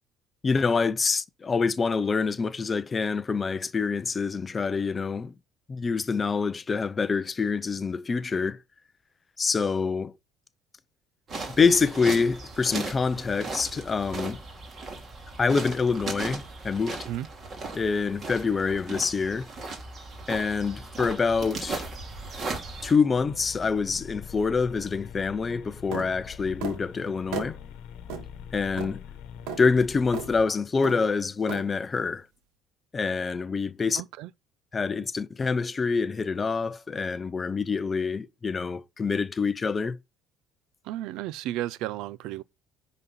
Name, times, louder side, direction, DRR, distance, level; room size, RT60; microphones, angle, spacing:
voice 1, 0.4-5.3 5.7-8.6 9.4-10.1 11.6-14.4 15.4-17.0 17.7-19.5 20.3-21.9 22.8-27.6 28.5-29.0 29.6-32.2 32.9-34.0 34.7-40.0, left 5 dB, 20° left, 0.6 m, -26 dB
sound 1, 11.3-22.9, right 3 dB, 30° right, 2.4 m, -37 dB
sound 2, 23.1-30.5, left 8 dB, 65° left, 1.1 m, -44 dB
sound 3, 25.9-26.1 26.6-26.8 27.3-27.5 28.1-28.3 28.8-28.9 29.5-29.6 30.1-30.3 30.8-31.0 31.5-31.6, right 6 dB, 80° right, 2.2 m, -34 dB
voice 2, 33.9-34.3 40.8-42.4, right 14 dB, 65° right, 0.5 m, -33 dB
11.0 x 4.1 x 5.5 m
cardioid pair, 175°, 0 cm